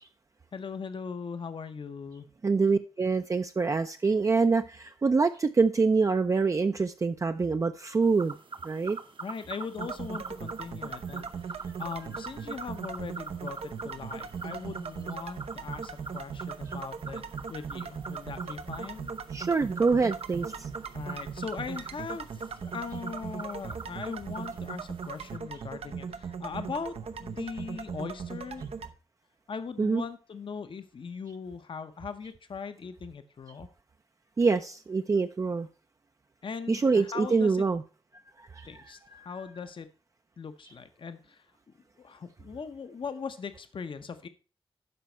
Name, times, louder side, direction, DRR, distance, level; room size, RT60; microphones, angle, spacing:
voice 1, 0.5-2.3 9.2-17.2 17.5-19.1 20.9-28.7 29.5-33.7 36.4-37.7 38.7-39.9 40.4-41.5 42.0-44.3, left 5 dB, 60° left, 10 dB, 0.8 m, -40 dB
voice 2, 2.4-8.3 8.6-9.0 19.3-20.5 29.8-30.0 34.4-35.7 36.7-37.8 38.5-38.7 39.1-39.3, right 4 dB, 35° right, 7 dB, 0.4 m, -25 dB
sound 1, 8.0-25.4, right 4 dB, 55° right, 0.9 m, -44 dB
sound 2, 9.7-28.9, right 6 dB, 85° right, 0.8 m, -39 dB
12.0 x 5.1 x 4.4 m, 0.35 s
wide cardioid pair, 130°, 10 cm